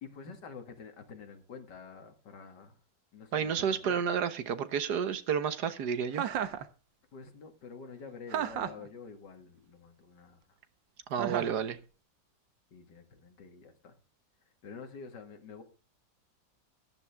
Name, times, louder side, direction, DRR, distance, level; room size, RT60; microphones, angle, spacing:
voice 1, 0.0-2.8 3.1-4.0 7.1-10.4 11.2-11.4 12.7-14.0 14.6-15.6, left 5 dB, 65° left, 2.4 m, -48 dB
voice 2, 3.3-6.2 11.1-11.8, right 7 dB, 65° right, 1.6 m, -31 dB
Chuckle chortle, 6.1-6.6 8.3-8.9 11.2-11.6, right 9 dB, 85° right, 1.7 m, -33 dB
13.5 x 10.5 x 3.5 m
omnidirectional pair, 2.0 m